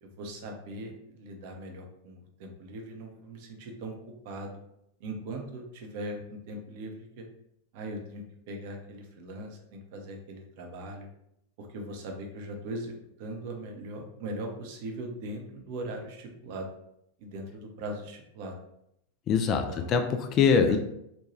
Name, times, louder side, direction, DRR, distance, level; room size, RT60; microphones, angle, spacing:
voice 1, 0.0-3.9 4.2-4.5 5.0-7.3 7.7-11.1 11.6-12.9 13.2-16.7 17.2-18.6 19.5-20.0 20.7-20.8, right 1 dB, 50° right, 2 dB, 0.6 m, -40 dB
voice 2, 19.3-20.8, left 6 dB, 30° left, 6 dB, 0.3 m, -23 dB
3.0 x 2.2 x 2.9 m, 0.77 s
figure-of-eight pair, 90°, 0 cm